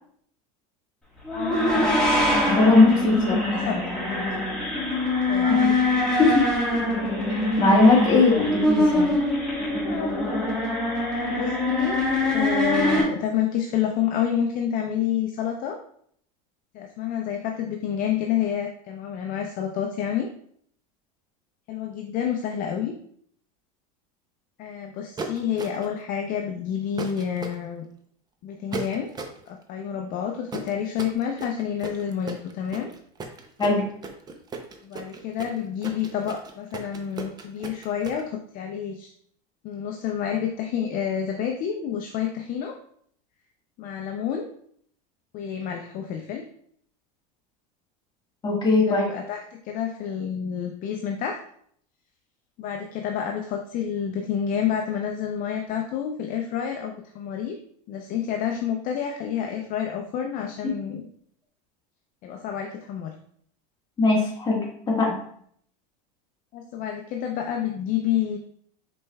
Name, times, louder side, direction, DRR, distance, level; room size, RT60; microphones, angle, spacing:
sound 1, 1.2-13.0, left 1 dB, 5° left, 1.5 m, -23 dB
voice 1, 1.3-1.6 3.2-4.3 5.3-5.6 6.7-6.8 9.8-10.2 11.2-12.0 12.3-15.8 16.7-20.3 21.7-22.9 24.6-27.8 28.4-29.1 29.5-32.9 34.8-39.1 39.6-42.8 43.8-44.5 45.3-46.4 48.8-51.4 52.6-57.6 57.9-61.1 62.2-63.1 66.5-68.4, left 9 dB, 45° left, 3 dB, 0.5 m, -29 dB
voice 2, 2.5-3.3 5.4-5.7 6.2-6.4 7.3-9.1 33.6-33.8 48.4-49.0 64.0-64.7 65.0-65.1, left 3 dB, 20° left, -3 dB, 1.5 m, -19 dB
sound 2, 25.2-26.0 27.0-27.6 28.7-29.4 30.5-38.2, right 4 dB, 20° right, 0.6 m, -36 dB
5.3 x 4.2 x 2.2 m, 0.64 s
supercardioid pair, 125°, 20 cm